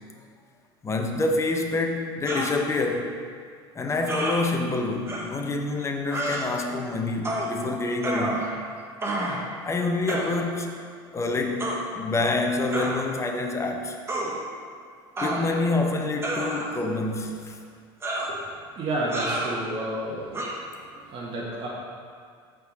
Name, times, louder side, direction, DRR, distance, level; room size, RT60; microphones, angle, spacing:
voice 1, 0.8-3.1 3.7-8.5 9.6-10.7 11.1-14.0 15.2-17.6, left 3 dB, 20° left, 3 dB, 0.7 m, -27 dB
sound 1, 2.3-2.5 4.1-4.4 5.1-5.2 6.1-6.4 7.2-7.5 8.0-8.7 9.0-9.5 10.1-10.3 11.6-11.8 12.7-13.0 14.1-14.3 15.2-15.7 16.2-16.8 18.0-18.3 19.1-19.5 20.3-20.5, right 1 dB, 20° right, 1.1 m, -29 dB
voice 2, 18.8-20.4 20.7-20.8 21.1-21.7, right 1 dB, 40° right, -5 dB, 1.3 m, -30 dB
5.7 x 3.7 x 5.1 m, 2.1 s
hypercardioid pair, 85°, 13 cm